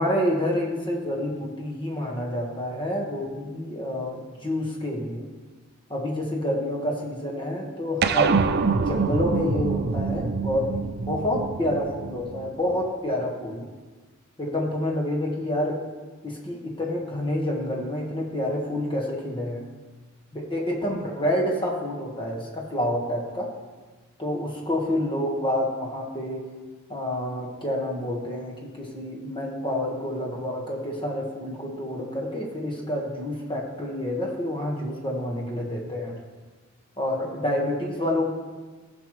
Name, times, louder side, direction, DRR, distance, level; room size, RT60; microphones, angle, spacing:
voice 1, 0.0-5.3 5.9-8.4 8.7-10.7 11.1-13.7 14.4-15.8 16.2-19.6 20.3-23.5 24.2-26.4 26.9-36.2 37.0-38.3, left 1 dB, 25° left, 0 dB, 1.6 m, -28 dB
sound 1, 8.0-12.7, right 5 dB, 50° right, 0.4 m, -25 dB
15.0 x 6.1 x 3.2 m, 1.3 s
head